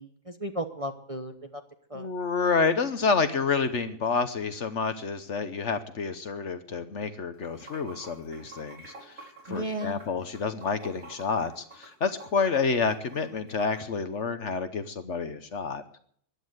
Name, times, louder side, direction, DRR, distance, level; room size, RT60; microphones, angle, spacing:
voice 1, 0.0-1.6 1.9-2.1 9.5-10.0, right 1 dB, 25° right, 6 dB, 1.0 m, -35 dB
voice 2, 1.9-8.8 9.5-16.0, left 5 dB, 55° left, 10 dB, 1.2 m, -29 dB
Water / Sink (filling or washing), 7.3-13.8, right 2 dB, 65° right, 5.2 m, -48 dB
15.0 x 11.0 x 7.9 m, 0.63 s
omnidirectional pair, 1.6 m